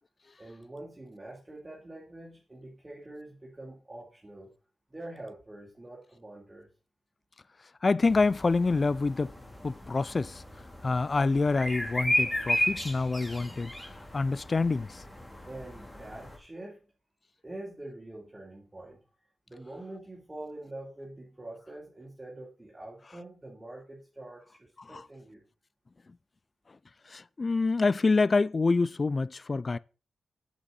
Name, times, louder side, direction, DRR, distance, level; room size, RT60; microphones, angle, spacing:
voice 1, 0.4-4.5 4.9-6.7 15.4-16.9 17.4-19.0 19.5-25.4, right 1 dB, 20° right, 3.4 m, -45 dB
voice 2, 7.8-9.3 9.6-10.4 10.8-13.7 14.1-15.0 24.9-25.0 27.1-29.8, left 3 dB, 40° left, 0.4 m, -26 dB
sound 1, 8.0-16.4, equal, 15° left, 2.9 m, -34 dB
8.2 x 8.2 x 4.1 m
cardioid pair, 65°, 0 cm